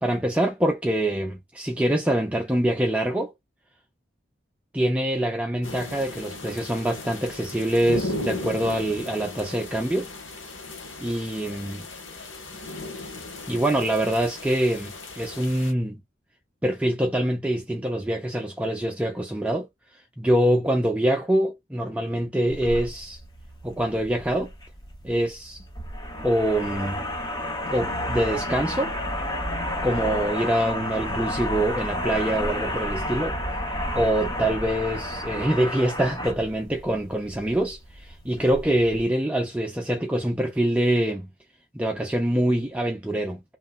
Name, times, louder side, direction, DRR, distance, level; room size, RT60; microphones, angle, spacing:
voice 1, 0.0-3.3 4.7-10.1 11.0-11.9 13.5-16.0 16.6-19.7 19.9-23.2 23.6-24.5 25.0-25.6 26.2-27.0 27.7-28.9 29.8-33.4 33.9-41.3 41.7-43.4, right 1 dB, 5° right, 0.4 m, -25 dB
sound 1, 5.6-15.7, left 2 dB, 90° left, 1.2 m, -36 dB
Wooden Plinth, 22.5-39.1, left 1 dB, 20° left, 1.0 m, -31 dB
3.1 x 2.2 x 2.4 m
head